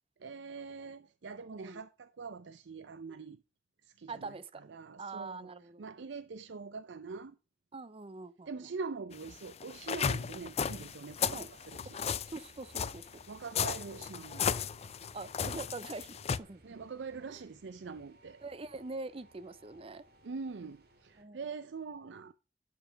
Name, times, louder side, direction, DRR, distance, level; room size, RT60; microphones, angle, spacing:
voice 1, 0.2-3.4 3.8-5.5 5.8-7.4 8.5-12.0 13.3-14.6 16.6-18.4 20.2-22.3, right 4 dB, 80° right, 0.5 m, -44 dB
voice 2, 1.5-1.8 4.1-4.6 5.0-5.8 7.7-8.5 11.3-11.5 12.3-13.1 15.1-16.6 18.4-20.0 21.2-21.4, right 3 dB, 30° right, 0.6 m, -43 dB
sound 1, 9.1-16.4, left 7 dB, 35° left, 0.4 m, -35 dB
sound 2, 9.7-21.2, right 1 dB, 60° right, 2.5 m, -62 dB
11.5 x 5.7 x 5.1 m
head